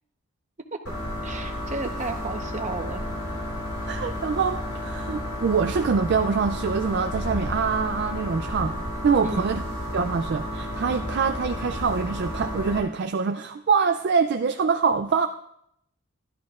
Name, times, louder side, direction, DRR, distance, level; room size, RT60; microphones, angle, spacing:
sound 1, 0.9-12.8, left 1 dB, 85° left, 3.9 m, -32 dB
voice 1, 1.2-3.0 9.2-9.6, right 2 dB, 35° right, 4 dB, 0.9 m, -33 dB
voice 2, 3.9-8.8 9.0-9.6 9.9-15.3, right 5 dB, 50° right, 7 dB, 0.3 m, -24 dB
12.5 x 12.5 x 2.4 m, 0.77 s
head